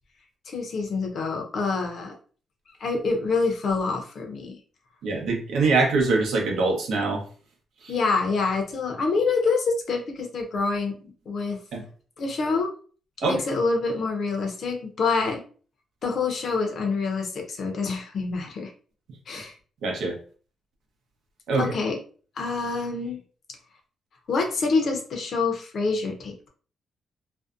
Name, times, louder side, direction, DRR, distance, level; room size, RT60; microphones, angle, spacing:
voice 1, 0.5-2.1 2.8-4.5 7.9-11.0 11.3-11.6 12.2-12.7 13.2-15.4 16.0-18.7 19.3-19.5 21.6-22.0 22.4-23.2 24.3-26.5, left 4 dB, 55° left, 3 dB, 0.6 m, -26 dB
voice 2, 5.0-7.2 11.7-11.8 13.2-13.4 19.8-20.1 21.5-21.7, right 3 dB, 75° right, 1 dB, 0.7 m, -23 dB
2.6 x 2.1 x 2.4 m, 0.41 s
cardioid pair, 115°, 0 cm